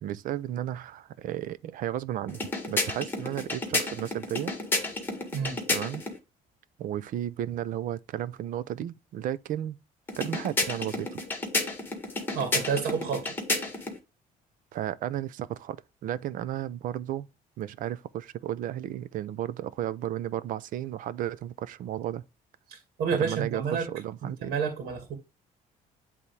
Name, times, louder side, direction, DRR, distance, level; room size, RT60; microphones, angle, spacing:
voice 1, 0.0-2.4 2.7-4.5 5.7-6.0 6.8-9.8 10.2-11.2 14.7-17.3 17.6-22.2 23.1-24.5, right 11 dB, 60° right, 0.6 m, -33 dB
sound 1, 2.3-6.2 10.1-14.0, left 2 dB, 15° left, 1.8 m, -31 dB
voice 2, 12.3-13.4 22.7-23.9 24.2-25.2, right 6 dB, 90° right, 2.2 m, -30 dB
10.5 x 3.6 x 3.3 m
cardioid pair, 160°, 15 cm